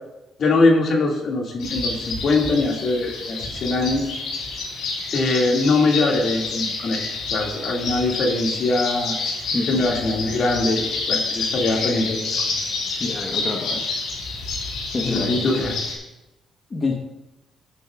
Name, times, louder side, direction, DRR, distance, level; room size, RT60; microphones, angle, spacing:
voice 1, 0.4-4.1 5.1-7.0 7.3-9.2 9.7-12.5 15.1-15.8, left 2 dB, 60° left, 0 dB, 2.2 m, -22 dB
sound 1, 1.6-15.9, left 3 dB, 80° left, 3.6 m, -28 dB
voice 2, 9.5-9.8 13.0-13.8 14.9-15.5 16.7-16.9, left 3 dB, 35° left, 0 dB, 1.1 m, -27 dB
15.5 x 9.1 x 2.4 m, 1.0 s
cardioid pair, 90°, 0 cm